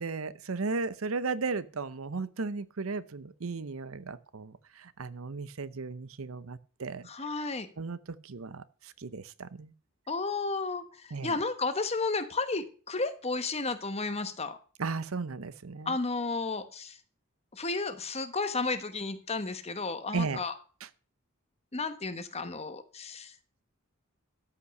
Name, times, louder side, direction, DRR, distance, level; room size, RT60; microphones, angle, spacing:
voice 1, 0.0-4.5 4.8-7.1 7.8-8.0 8.2-8.6 9.0-9.7 11.1-11.4 14.8-16.0 20.1-20.4, right 4 dB, 80° right, 16 dB, 0.7 m, -35 dB
voice 2, 7.0-7.7 10.1-14.6 15.9-17.0 17.5-20.6 21.7-23.3, left 3 dB, 30° left, 9 dB, 1.2 m, -33 dB
13.0 x 5.7 x 6.4 m, 0.39 s
head